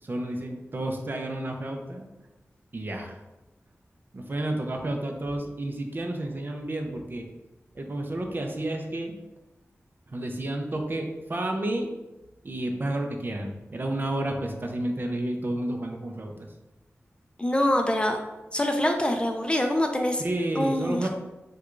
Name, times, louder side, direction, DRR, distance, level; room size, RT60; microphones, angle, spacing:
voice 1, 0.0-2.0 2.7-3.2 4.1-7.3 7.8-9.2 10.1-11.9 12.4-16.5 20.2-21.1, right 1 dB, 45° right, 3 dB, 0.5 m, -31 dB
voice 2, 17.4-18.2 18.5-20.2 20.6-21.1, left 1 dB, 20° left, 4 dB, 0.4 m, -25 dB
4.5 x 2.3 x 2.4 m, 1.0 s
wide cardioid pair, 75°, 5 cm